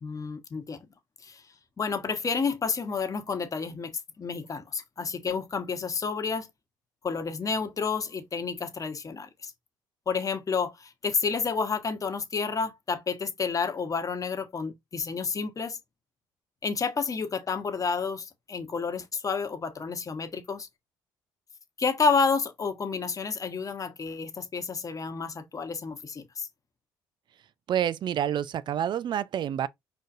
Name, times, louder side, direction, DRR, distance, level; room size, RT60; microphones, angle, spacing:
voice 1, 0.0-0.8 1.2-1.4 1.8-6.5 7.0-9.5 10.1-15.8 16.6-20.7 21.8-26.5, left 5 dB, 35° left, 1.2 m, -30 dB
voice 2, 27.7-29.7, right 10 dB, 50° right, 0.5 m, -28 dB
4.8 x 4.1 x 2.5 m
supercardioid pair, 65°, 10 cm